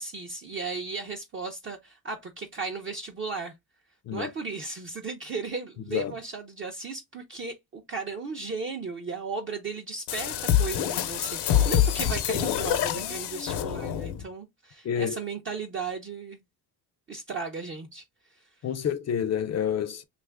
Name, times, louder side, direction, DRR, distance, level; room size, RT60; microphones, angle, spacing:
voice 1, 0.0-3.5 4.1-16.4 17.1-18.0 18.3-18.4, right 4 dB, 30° right, 0.5 m, -35 dB
sound 1, 10.1-14.2, left 10 dB, 75° left, 0.8 m, -26 dB
voice 2, 14.8-15.2 18.6-20.0, left 8 dB, 40° left, 0.4 m, -28 dB
2.9 x 2.4 x 3.3 m
cardioid pair, 120°, 40 cm